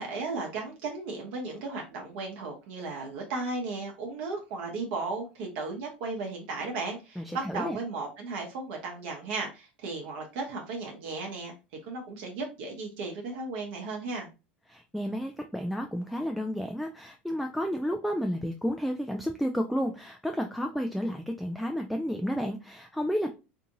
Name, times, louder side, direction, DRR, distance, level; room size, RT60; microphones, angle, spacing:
voice 1, 0.0-11.5 11.8-14.3, right 3 dB, 60° right, 1 dB, 0.9 m, -35 dB
voice 2, 7.2-7.8 14.7-23.3, equal, ahead, 4 dB, 0.4 m, -31 dB
2.7 x 2.5 x 2.6 m, 0.29 s
figure-of-eight pair, 75°, 6 cm